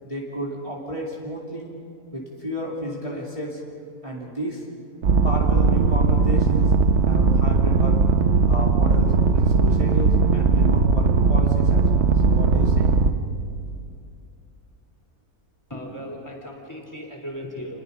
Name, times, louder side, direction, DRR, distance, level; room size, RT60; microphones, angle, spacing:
voice 1, 0.0-1.7 2.1-3.6 4.0-4.6 5.2-6.7 7.0-8.0 8.5-12.9, equal, 20° right, -4 dB, 2.8 m, -32 dB
sound 1, 5.0-13.1, right 4 dB, 55° right, 1.0 m, -18 dB
voice 2, 15.7-17.8, equal, 10° left, 0 dB, 3.6 m, -36 dB
29.0 x 21.5 x 5.3 m, 2.5 s
omnidirectional pair, 1.6 m